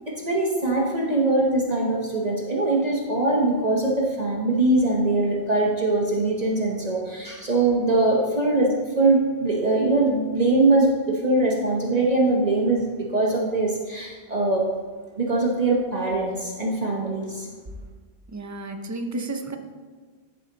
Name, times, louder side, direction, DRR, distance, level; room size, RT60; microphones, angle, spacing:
voice 1, 0.2-12.8 13.1-14.6 15.2-17.5, right 2 dB, 40° right, -2 dB, 1.0 m, -22 dB
voice 2, 18.3-19.6, right 2 dB, 25° right, 5 dB, 0.4 m, -32 dB
10.5 x 5.0 x 3.9 m, 1.5 s
omnidirectional pair, 1.1 m